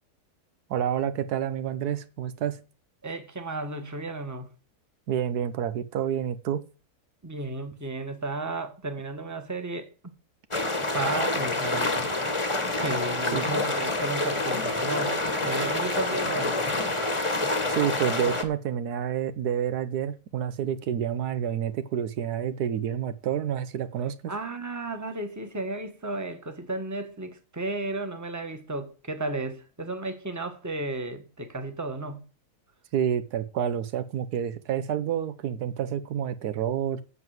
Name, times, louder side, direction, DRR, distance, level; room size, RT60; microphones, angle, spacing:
voice 1, 0.7-2.6 5.1-6.7 13.3-13.6 17.7-24.3 32.9-37.0, right 9 dB, 85° right, 1.4 m, -29 dB
voice 2, 3.0-4.5 7.2-10.1 10.8-12.3 12.8-16.7 24.3-32.2, right 2 dB, 10° right, 1.3 m, -33 dB
sound 1, 10.5-18.4, left 2 dB, 20° left, 1.3 m, -27 dB
8.0 x 7.6 x 7.8 m
omnidirectional pair, 1.6 m